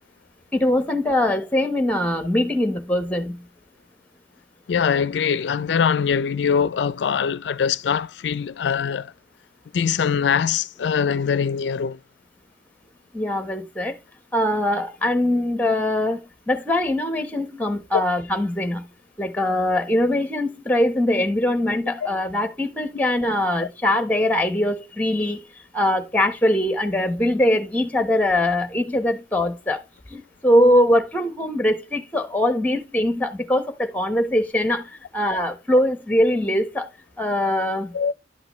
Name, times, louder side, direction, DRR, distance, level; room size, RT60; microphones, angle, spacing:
voice 1, 0.5-3.4 13.1-14.0 14.3-16.2 16.5-18.9 19.2-25.5 25.7-29.8 30.1-36.9 37.2-37.9, left 1 dB, 10° left, 1.2 m, -22 dB
voice 2, 4.7-9.1 9.7-12.0 37.9-38.1, left 7 dB, 75° left, 0.4 m, -22 dB
11.0 x 5.9 x 3.1 m
head